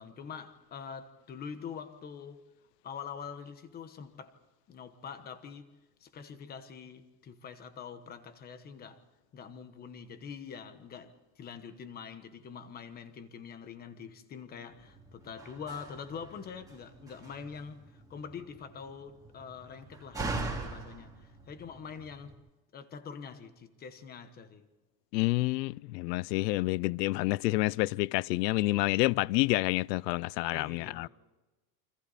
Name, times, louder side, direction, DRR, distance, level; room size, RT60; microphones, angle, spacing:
voice 1, 0.0-2.4 2.8-4.3 4.7-5.7 6.0-9.0 9.3-22.4 22.7-24.7 30.5-31.1, left 6 dB, 20° left, 1.2 m, -45 dB
Slam, 14.7-22.3, right 3 dB, 5° right, 2.5 m, -42 dB
voice 2, 25.1-31.1, left 20 dB, 85° left, 0.6 m, -28 dB
29.0 x 25.0 x 4.2 m
cardioid pair, 180°, 48 cm